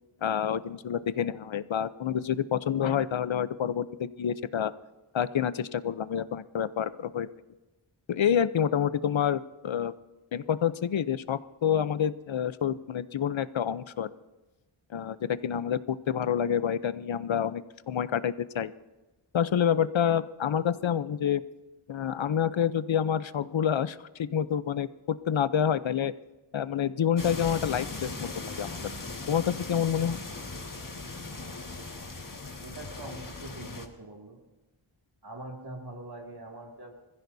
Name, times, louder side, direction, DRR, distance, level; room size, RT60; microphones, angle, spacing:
voice 1, 0.2-4.7 5.1-7.3 8.1-9.9 10.3-14.1 14.9-15.2 15.4-18.7 19.3-21.4 21.9-26.1 26.5-28.8 29.3-30.2, left 8 dB, 65° left, 14 dB, 0.8 m, -28 dB
sound 1, 27.2-33.9, left 3 dB, 40° left, 1.9 m, -39 dB
voice 2, 32.6-34.4 35.2-36.9, right 2 dB, 50° right, 0 dB, 2.5 m, -43 dB
26.0 x 15.5 x 2.7 m, 1.1 s
wide cardioid pair, 55°, 49 cm